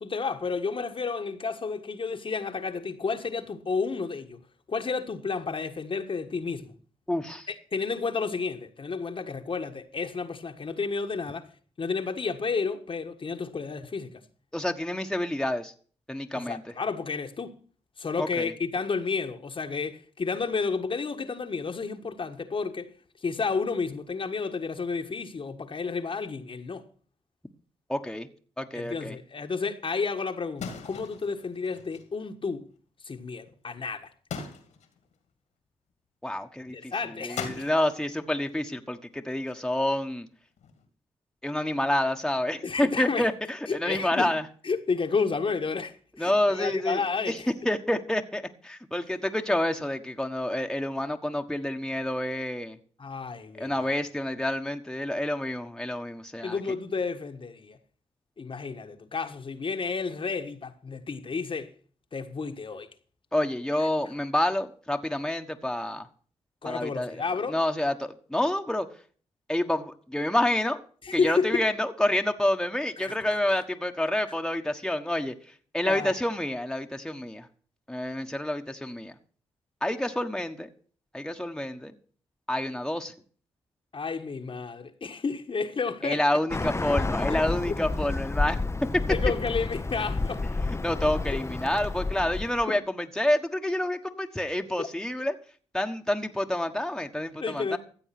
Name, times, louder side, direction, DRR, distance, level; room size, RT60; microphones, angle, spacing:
voice 1, 0.0-4.4 4.7-6.7 7.5-11.5 11.8-14.2 16.3-17.6 18.0-22.9 23.2-26.8 28.7-32.7 33.0-34.1 36.7-37.7 42.6-43.3 43.7-44.3 44.6-47.5 53.0-53.9 56.4-57.8 58.4-61.7 62.1-62.9 63.8-63.9 66.6-67.6 71.0-71.6 73.0-73.2 73.5-73.6 75.8-76.1 83.9-86.2 87.3-87.4 89.1-90.4 91.3-91.4 92.7-92.8 94.8-94.9 97.4-97.8, left 4 dB, 50° left, 1.5 m, -31 dB
voice 2, 7.1-7.5 14.5-15.7 16.1-16.6 18.2-18.5 27.9-28.3 28.6-29.2 36.2-40.3 41.4-44.4 46.2-47.4 47.6-52.8 53.6-56.6 63.3-66.1 66.6-68.9 69.5-70.8 71.1-75.3 75.7-77.5 77.9-79.1 79.8-80.7 81.1-81.9 82.5-83.1 86.0-88.6 88.9-89.0 90.8-95.3 95.7-97.8, left 1 dB, 5° left, 1.4 m, -28 dB
sound 1, 30.6-32.1 33.4-33.8 34.3-35.1 37.4-38.6 39.0-39.8 40.6-40.8, left 6 dB, 80° left, 2.3 m, -40 dB
Bird, 86.5-92.6, left 3 dB, 25° left, 0.8 m, -30 dB
14.5 x 7.8 x 6.0 m
supercardioid pair, 50°, 12 cm